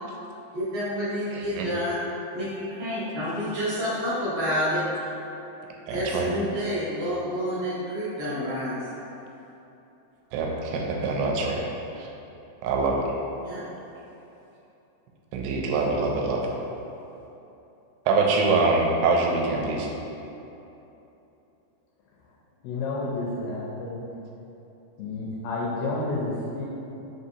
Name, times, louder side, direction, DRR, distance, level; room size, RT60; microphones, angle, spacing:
voice 1, 0.5-2.0 2.3-5.1 5.9-8.9 13.4-13.6, equal, 50° right, -13 dB, 1.9 m, -29 dB
voice 2, 1.3-1.7 5.9-6.3 10.3-11.7 12.0-12.1 12.6-13.1 15.3-16.5 18.1-19.9, right 3 dB, 85° right, 0 dB, 2.5 m, -24 dB
voice 3, 22.6-24.1 25.0-26.7, left 2 dB, 80° left, -5 dB, 2.4 m, -30 dB
6.0 x 2.8 x 2.7 m, 3.0 s
omnidirectional pair, 4.6 m